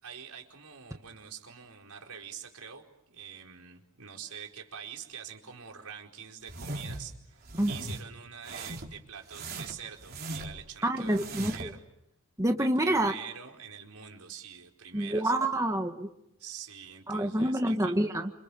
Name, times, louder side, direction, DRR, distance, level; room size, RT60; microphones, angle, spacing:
voice 1, 0.0-11.8 12.6-15.3 16.4-18.0, right 8 dB, 80° right, 2 dB, 4.6 m, -45 dB
sound 1, 6.5-7.1 7.4-8.0 8.4-9.0 9.3-10.7 11.1-11.7, right 2 dB, 45° right, 3.9 m, -39 dB
voice 2, 10.8-11.7 12.4-13.1 14.9-16.1 17.1-18.3, right 1 dB, 15° right, 4 dB, 1.7 m, -27 dB
28.5 x 28.0 x 7.1 m, 0.83 s
head